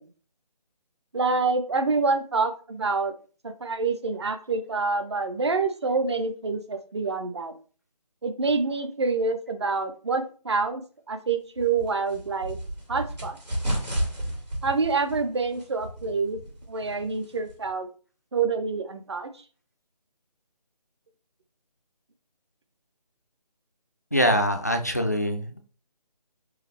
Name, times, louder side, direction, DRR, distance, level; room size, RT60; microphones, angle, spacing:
voice 1, 1.1-3.1 3.4-7.5 8.2-10.8 11.1-12.6 12.9-13.4 14.6-16.4 16.7-17.9 18.3-19.3, right 4 dB, 40° right, 8 dB, 0.6 m, -27 dB
sound 1, 11.6-17.7, right 1 dB, 80° right, 2.5 m, -33 dB
voice 2, 24.1-25.7, equal, 25° left, 6 dB, 0.3 m, -24 dB
4.7 x 3.3 x 3.4 m, 0.39 s
figure-of-eight pair, 155°, 21 cm